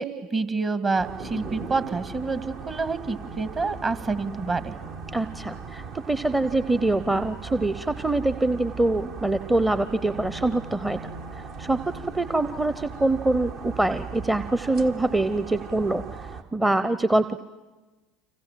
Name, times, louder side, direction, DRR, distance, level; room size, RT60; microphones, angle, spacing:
voice 1, 0.0-4.7, right 4 dB, 35° right, 11 dB, 2.3 m, -28 dB
sound 1, 1.0-16.4, right 4 dB, 55° right, 1.8 m, -38 dB
voice 2, 5.1-5.8 6.1-11.1 11.6-11.8 12.1-16.0 16.5-17.4, right 2 dB, 10° right, 12 dB, 0.8 m, -24 dB
29.5 x 26.0 x 7.6 m, 1.2 s
hypercardioid pair, 75°, 0 cm